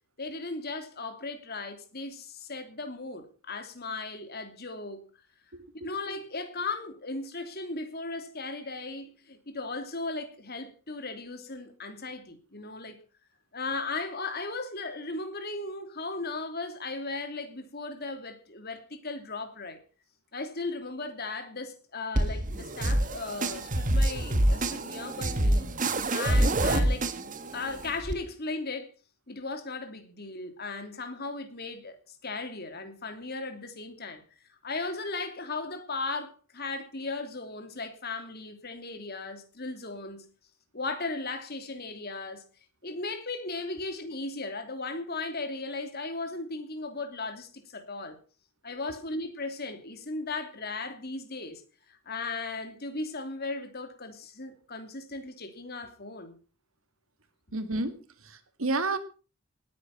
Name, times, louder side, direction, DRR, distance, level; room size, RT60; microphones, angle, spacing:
voice 1, 0.2-5.0 5.8-13.0 13.5-19.8 20.3-25.7 26.1-27.1 27.5-28.9 29.3-34.2 34.6-40.2 40.7-42.4 42.8-48.2 48.6-51.6 51.9-56.4, left 3 dB, 45° left, 3.0 m, -37 dB
sound 1, 22.1-28.1, right 1 dB, 35° right, 1.5 m, -27 dB
voice 2, 57.5-58.0 58.2-59.0, right 2 dB, 65° right, 2.0 m, -30 dB
19.5 x 9.5 x 6.0 m
head